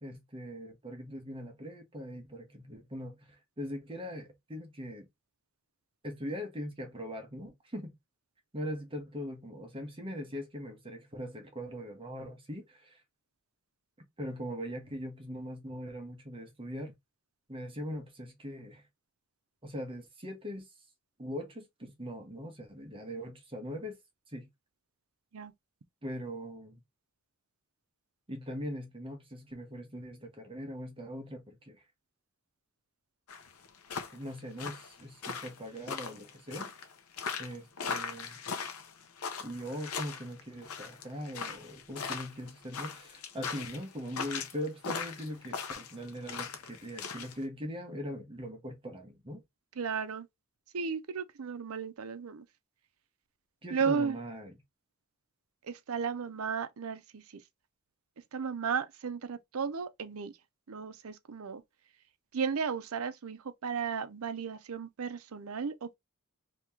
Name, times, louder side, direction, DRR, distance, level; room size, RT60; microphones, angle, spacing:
voice 1, 0.0-5.1 6.0-7.9 8.5-13.0 14.2-17.0 17.5-18.8 19.6-20.7 21.2-24.0 24.3-24.5 26.0-26.8 28.3-31.8 34.1-36.7 37.4-38.4 39.4-49.4 53.6-54.6, equal, 25° right, 1.0 m, -41 dB
sound 1, 33.3-47.3, left 5 dB, 85° left, 0.8 m, -39 dB
voice 2, 49.8-50.3 50.7-52.4 53.7-54.2 55.7-57.2 58.3-60.3 60.7-61.6 62.3-66.0, right 6 dB, 75° right, 0.6 m, -34 dB
3.0 x 2.8 x 3.5 m
head